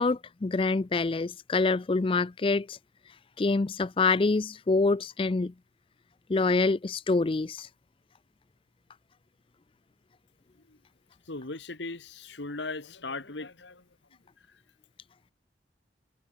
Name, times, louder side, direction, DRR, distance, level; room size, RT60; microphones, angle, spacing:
voice 1, 0.0-2.8 3.4-5.5 6.3-7.7, left 3 dB, 30° left, 0.4 m, -26 dB
voice 2, 11.3-13.8, left 3 dB, 80° left, 1.9 m, -38 dB
head